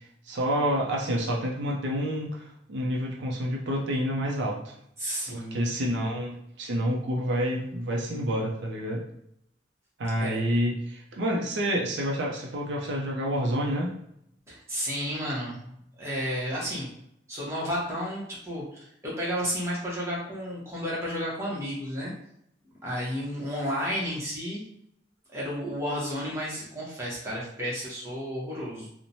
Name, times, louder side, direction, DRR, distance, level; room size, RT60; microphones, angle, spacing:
voice 1, 0.3-4.7 5.3-9.0 10.0-13.9, equal, 70° right, -1 dB, 0.5 m, -28 dB
voice 2, 5.0-5.7 10.2-10.4 14.5-16.9 17.3-22.1 22.8-24.6 25.3-28.9, equal, 15° right, -6 dB, 0.8 m, -32 dB
3.0 x 2.1 x 2.6 m, 0.74 s
head